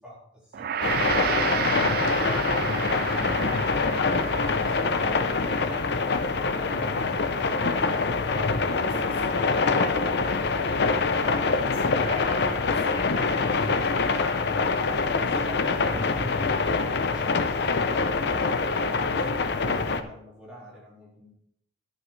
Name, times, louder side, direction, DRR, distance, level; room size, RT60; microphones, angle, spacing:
voice 1, 0.0-6.0 6.4-9.4 14.8-21.3, left 1 dB, 5° right, -7 dB, 4.4 m, -45 dB
Gong, 0.5-9.9, right 9 dB, 55° right, 0.3 m, -33 dB
sound 1, 0.8-20.0, left 4 dB, 65° left, 0.7 m, -25 dB
voice 2, 9.5-13.6 14.0-14.5, left 1 dB, 30° left, -5 dB, 2.3 m, -40 dB
13.0 x 8.3 x 3.2 m, 0.70 s
head